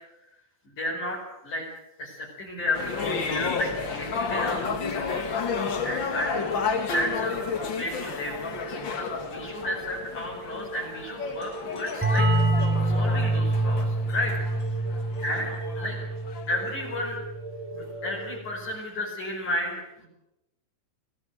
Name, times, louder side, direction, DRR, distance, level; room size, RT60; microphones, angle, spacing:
voice 1, 0.7-1.7 2.0-5.4 5.8-8.3 8.7-12.3 12.5-14.3 15.2-16.0 16.5-17.2 17.7-20.1, left 1 dB, 45° left, -2 dB, 6.2 m, -33 dB
sound 1, 2.7-17.1, left 5 dB, 75° left, 1.0 m, -32 dB
sound 2, 7.2-18.4, right 3 dB, 50° right, 3.6 m, -41 dB
sound 3, 12.0-17.5, right 1 dB, 5° right, 2.0 m, -26 dB
24.5 x 16.5 x 8.0 m, 0.90 s
omnidirectional pair, 5.2 m